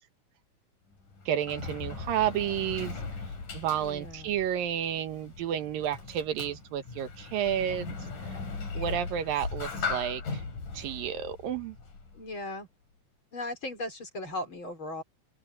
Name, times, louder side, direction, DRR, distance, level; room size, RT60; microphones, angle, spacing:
Sliding door, 0.9-12.4, left 4 dB, 65° left, 7.1 m, -39 dB
voice 1, 1.3-3.0 3.5-8.0 8.7-10.4 10.7-11.8, right 10 dB, 85° right, 3.1 m, -31 dB
voice 2, 3.7-4.4 12.1-12.7 13.3-15.0, left 1 dB, 35° left, 5.1 m, -37 dB
open air
omnidirectional pair, 3.9 m